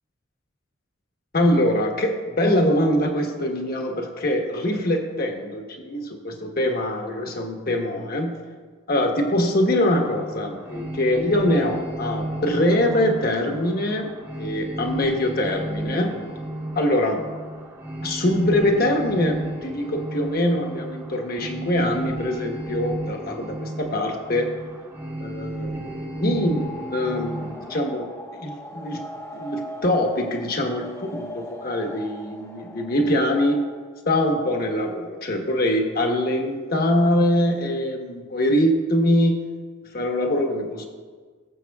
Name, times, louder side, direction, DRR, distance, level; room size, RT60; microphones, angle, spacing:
voice 1, 1.3-8.4 8.9-16.2 16.7-17.2 18.0-24.5 25.2-29.0 29.3-33.6 34.0-39.4 39.9-40.9, left 1 dB, 50° left, 2 dB, 1.2 m, -23 dB
sound 1, 9.9-27.8, right 1 dB, 15° right, 0.9 m, -34 dB
sound 2, 26.2-33.9, left 1 dB, 15° left, 0.7 m, -40 dB
19.0 x 7.4 x 2.3 m, 1.5 s
head